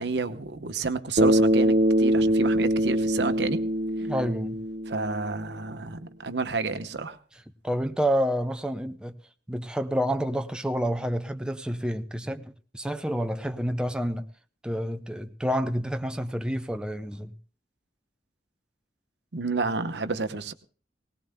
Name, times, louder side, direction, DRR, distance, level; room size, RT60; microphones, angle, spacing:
voice 1, 0.0-3.6 4.0-4.1 4.9-7.2 19.3-20.5, right 4 dB, 75° right, 0.9 m, -30 dB
Bass guitar, 1.2-5.5, right 1 dB, 45° right, 0.8 m, -23 dB
voice 2, 4.0-4.6 7.6-9.2 9.5-14.3 14.6-17.4, equal, 5° right, 0.5 m, -29 dB
20.0 x 18.5 x 2.2 m
head